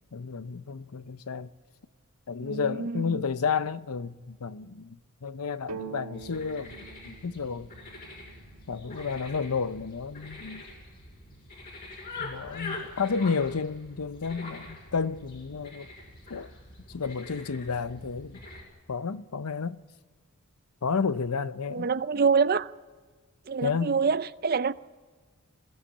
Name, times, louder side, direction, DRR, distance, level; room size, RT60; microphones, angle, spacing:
voice 1, 0.1-1.5 2.3-6.8 7.0-7.7 8.7-10.6 12.2-15.9 16.3-16.5 16.9-18.4 18.9-19.8 20.8-21.9 23.6-24.0, left 5 dB, 80° left, 0.7 m, -31 dB
voice 2, 2.4-3.2 21.7-22.7 23.5-24.7, right 5 dB, 45° right, 0.5 m, -26 dB
sound 1, 5.7-9.4, right 4 dB, 90° right, 1.4 m, -45 dB
sound 2, 6.1-18.6, left 3 dB, 45° left, 5.7 m, -44 dB
21.0 x 16.0 x 8.6 m
head